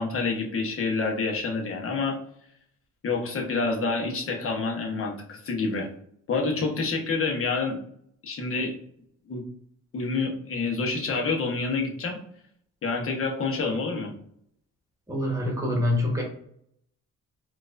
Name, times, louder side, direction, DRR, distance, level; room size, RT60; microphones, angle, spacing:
voice 1, 0.0-2.2 3.0-5.9 6.3-7.8 8.2-8.7 9.3-9.4 9.9-12.2 12.8-14.1, left 4 dB, 45° left, 0 dB, 1.0 m, -28 dB
voice 2, 15.1-16.2, left 1 dB, 10° right, -1 dB, 1.2 m, -25 dB
4.5 x 2.4 x 2.5 m, 0.67 s
cardioid pair, 90°, 30 cm